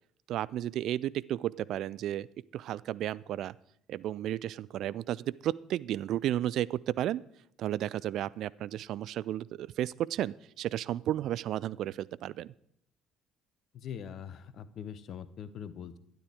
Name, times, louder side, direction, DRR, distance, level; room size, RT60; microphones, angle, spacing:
voice 1, 0.3-2.3 2.5-3.6 3.9-7.2 7.6-12.5, right 12 dB, 55° right, 20 dB, 0.4 m, -33 dB
voice 2, 13.7-16.0, left 8 dB, 50° left, 15 dB, 0.8 m, -42 dB
12.5 x 11.0 x 4.9 m, 0.72 s
figure-of-eight pair, 50°, 0 cm